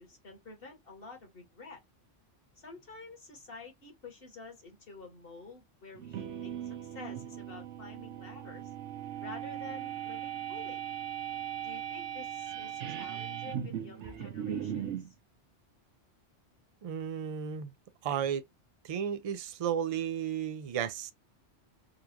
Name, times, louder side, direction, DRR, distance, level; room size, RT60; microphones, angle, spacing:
voice 1, 0.0-1.8 2.6-8.7 9.2-10.8 11.6-15.1, left 3 dB, 50° left, 1.6 m, -49 dB
sound 1, 5.9-15.1, right 10 dB, 70° right, 1.0 m, -38 dB
voice 2, 16.8-17.7 18.0-18.4 18.8-21.1, right 8 dB, 55° right, 0.4 m, -33 dB
3.9 x 2.4 x 2.8 m
omnidirectional pair, 1.2 m